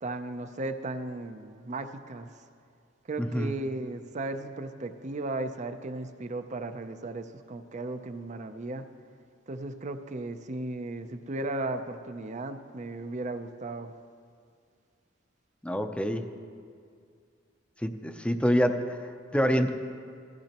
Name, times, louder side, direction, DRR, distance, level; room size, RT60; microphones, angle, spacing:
voice 1, 0.0-2.3 3.1-8.9 9.5-13.9, right 2 dB, 40° right, 9 dB, 0.5 m, -36 dB
voice 2, 3.2-3.5 15.6-16.3 17.8-19.7, equal, 5° left, 7 dB, 0.5 m, -27 dB
16.0 x 14.5 x 3.0 m, 2.2 s
head